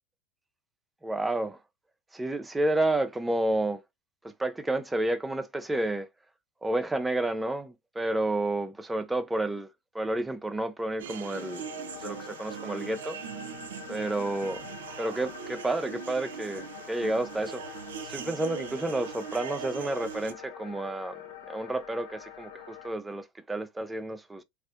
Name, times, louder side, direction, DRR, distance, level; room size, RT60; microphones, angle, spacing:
voice 1, 1.0-1.6 2.1-3.8 4.2-6.1 6.6-9.7 9.9-11.6 12.0-13.2 13.9-14.6 15.0-21.2 21.5-24.4, right 2 dB, 10° right, 0.5 m, -30 dB
sound 1, 11.0-20.3, right 8 dB, 80° right, 0.5 m, -40 dB
sound 2, 11.3-22.9, left 10 dB, 80° left, 0.6 m, -46 dB
3.2 x 2.5 x 2.4 m
hypercardioid pair, 95°, 0 cm